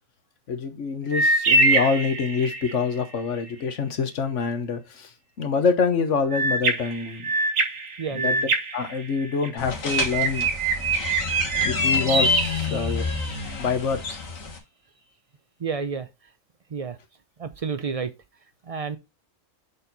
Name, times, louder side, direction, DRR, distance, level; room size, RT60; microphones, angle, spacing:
voice 1, 0.5-5.1 5.4-7.3 8.1-8.4 8.7-10.5 11.6-13.1 13.6-14.0, left 5 dB, 65° left, 1.3 m, -25 dB
sound 1, 1.1-2.8 6.3-9.5 9.9-13.3, right 2 dB, 80° right, 1.6 m, -24 dB
voice 2, 8.0-8.5 15.6-16.0 16.7-17.0 17.4-18.1 18.7-19.0, right 5 dB, 55° right, 0.4 m, -30 dB
sound 2, 9.6-14.6, left 4 dB, 90° left, 1.9 m, -30 dB
6.9 x 4.4 x 4.0 m
omnidirectional pair, 1.4 m